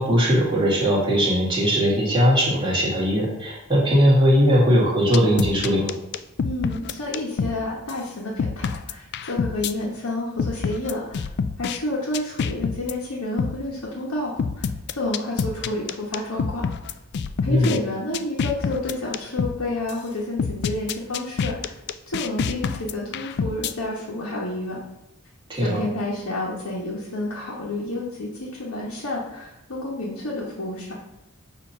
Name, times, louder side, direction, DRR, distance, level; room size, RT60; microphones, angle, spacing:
voice 1, 0.0-5.9 17.5-17.7 25.5-25.8, equal, 20° right, -5 dB, 1.8 m, -19 dB
sound 1, 5.1-7.6 7.9-8.0 8.4-9.7 10.4-11.8 12.1-12.9 13.4-13.6 14.4-17.8 18.1-19.6 19.9-20.0 20.4-23.7, left 6 dB, 50° left, 0.3 m, -27 dB
voice 2, 6.4-11.2 11.6-16.7 17.4-21.7 22.1-24.8 25.5-30.9, left 1 dB, 85° left, -5 dB, 1.2 m, -30 dB
6.8 x 2.9 x 5.5 m, 0.91 s
head